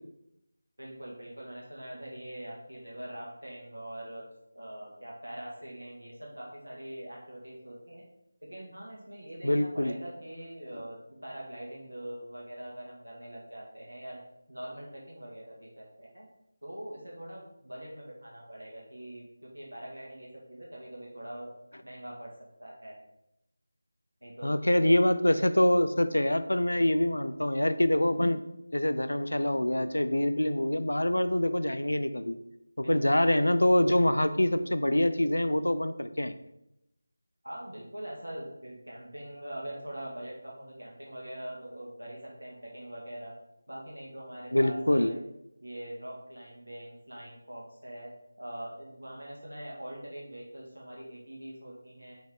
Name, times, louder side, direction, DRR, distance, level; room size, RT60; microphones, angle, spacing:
voice 1, 0.8-4.2 4.5-8.1 8.4-14.2 14.5-16.3 16.6-21.5 21.8-22.3 22.6-23.0 24.2-24.5 32.8-33.1 37.4-43.3 43.7-45.2 45.6-48.1 48.4-52.1, right 1 dB, 80° right, -3 dB, 1.9 m, -43 dB
voice 2, 9.4-10.0 24.4-28.4 28.7-32.3 32.9-36.3 44.5-45.1, left 1 dB, 70° left, 11 dB, 0.5 m, -25 dB
5.4 x 4.8 x 3.7 m, 0.83 s
figure-of-eight pair, 165°, 0 cm